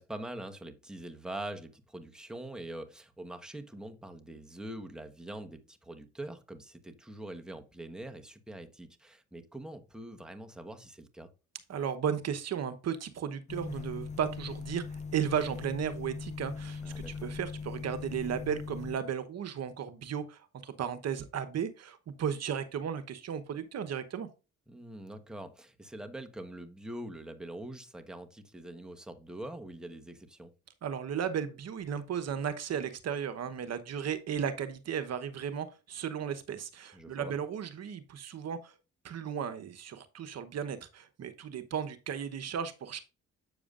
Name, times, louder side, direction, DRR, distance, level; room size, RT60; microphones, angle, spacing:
voice 1, 0.0-11.3 16.8-17.3 24.7-30.5 36.9-37.3, right 1 dB, ahead, 1.1 m, -44 dB
voice 2, 11.7-24.3 30.8-38.7 39.0-43.0, right 8 dB, 55° right, 1.0 m, -35 dB
sound 1, 13.5-19.0, left 5 dB, 25° left, 0.4 m, -40 dB
7.9 x 7.0 x 2.5 m
cardioid pair, 90°, 30 cm